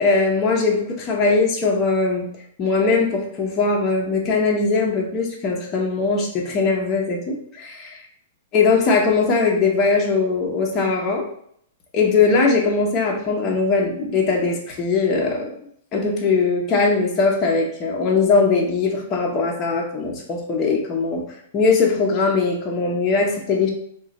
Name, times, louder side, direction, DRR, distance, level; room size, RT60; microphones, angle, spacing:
voice 1, 0.0-2.3 2.6-8.0 8.5-11.3 11.9-15.5 15.9-21.2 21.5-23.7, left 4 dB, 20° left, -1 dB, 0.6 m, -20 dB
3.7 x 2.1 x 3.9 m, 0.68 s
hypercardioid pair, 160°, 0 cm